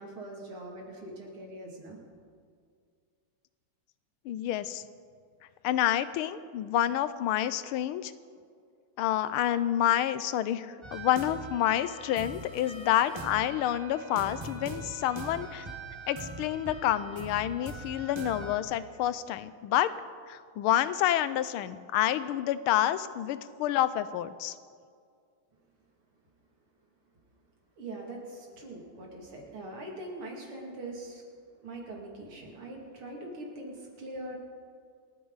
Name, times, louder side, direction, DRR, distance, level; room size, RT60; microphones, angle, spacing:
voice 1, 0.0-2.0 27.8-31.2 31.6-34.4, right 1 dB, 85° right, -1 dB, 3.4 m, -42 dB
voice 2, 4.2-4.8 5.6-8.1 9.0-15.7 16.1-19.9 20.3-24.5, left 12 dB, 85° left, 14 dB, 1.5 m, -28 dB
sound 1, 10.8-18.6, right 2 dB, 20° right, 0.9 m, -42 dB
28.5 x 9.6 x 4.0 m, 2.1 s
omnidirectional pair, 2.3 m